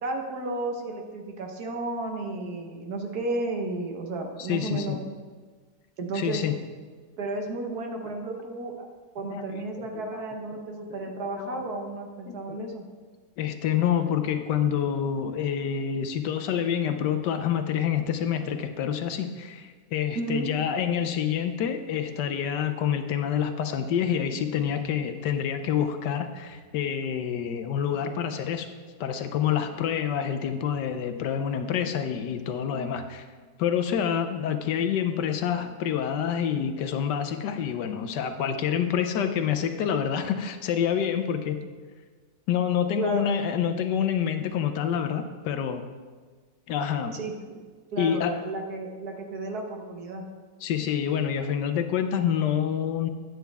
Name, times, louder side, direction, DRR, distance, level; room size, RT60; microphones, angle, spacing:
voice 1, 0.0-5.0 6.0-6.4 7.2-8.8 9.1-12.8 20.1-20.5 43.0-43.3 47.1-47.6 47.9-50.2, right 2 dB, 60° right, 3 dB, 1.4 m, -33 dB
voice 2, 4.5-5.0 6.1-6.5 7.9-8.1 9.2-10.2 10.5-10.6 10.9-11.0 11.4-11.7 12.3-12.8 13.4-28.7 29.0-33.3 33.6-41.6 42.5-45.9 46.7-47.2 48.0-48.4 50.6-53.1, left 8 dB, 75° left, 7 dB, 1.2 m, -27 dB
9.2 x 9.1 x 3.4 m, 1.5 s
omnidirectional pair, 2.0 m